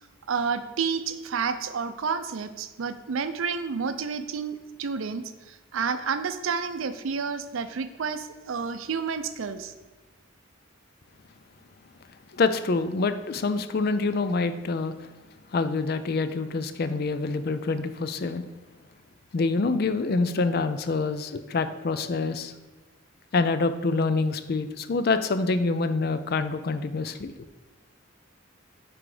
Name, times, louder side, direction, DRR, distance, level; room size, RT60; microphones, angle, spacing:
voice 1, 0.3-9.7, right 5 dB, 80° right, 11 dB, 0.5 m, -30 dB
voice 2, 12.3-14.9 15.5-18.4 19.3-22.5 23.3-27.3, left 3 dB, 50° left, 11 dB, 0.4 m, -26 dB
6.0 x 4.6 x 4.9 m, 1.2 s
head